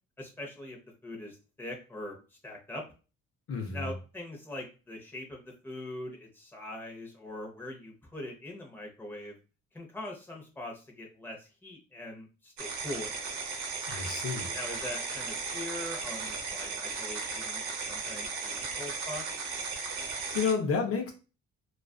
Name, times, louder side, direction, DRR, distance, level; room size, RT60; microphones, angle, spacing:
voice 1, 0.2-2.8 3.7-9.4 9.7-13.2 14.5-19.4, left 1 dB, 5° left, 0.7 m, -42 dB
voice 2, 3.5-3.9 13.8-14.6 20.3-21.1, left 5 dB, 50° left, 0.6 m, -30 dB
sound 1, 12.6-20.5, right 4 dB, 65° right, 0.8 m, -36 dB
2.4 x 2.3 x 2.3 m
cardioid pair, 90°, 30 cm